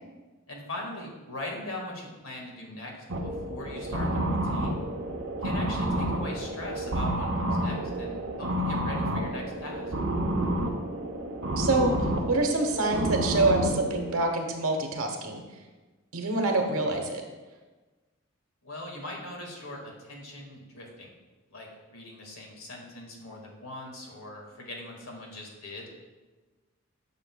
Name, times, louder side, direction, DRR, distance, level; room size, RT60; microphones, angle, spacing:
voice 1, 0.5-2.9 3.2-4.8 5.4-9.9 18.6-21.1 21.5-25.9, left 1 dB, 85° left, -1 dB, 1.9 m, -41 dB
sound 1, 3.1-14.2, right 1 dB, 60° right, 0.9 m, -30 dB
voice 2, 11.6-15.4 16.1-17.2, right 2 dB, 80° right, 3 dB, 1.1 m, -26 dB
10.0 x 6.6 x 2.3 m, 1.2 s
head